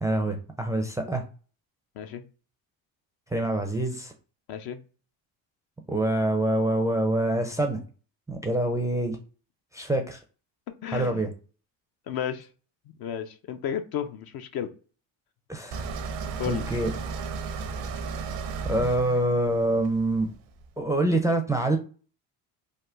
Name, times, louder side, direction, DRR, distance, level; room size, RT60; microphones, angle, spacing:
voice 1, 0.0-1.2 3.3-4.1 5.9-7.8 8.3-9.2 9.7-10.2 10.9-11.3 15.5-15.9 16.5-16.9 18.6-20.3 20.8-21.8, right 1 dB, 5° right, 3 dB, 0.4 m, -25 dB
voice 2, 2.0-2.3 4.5-4.8 10.8-11.2 12.1-12.5 13.0-14.7 16.1-16.2 16.4-16.6, left 9 dB, 50° left, 8 dB, 0.5 m, -33 dB
sound 1, 15.7-20.7, right 4 dB, 65° right, 0.7 m, -34 dB
3.5 x 2.2 x 2.4 m, 0.37 s
hypercardioid pair, 70°, 46 cm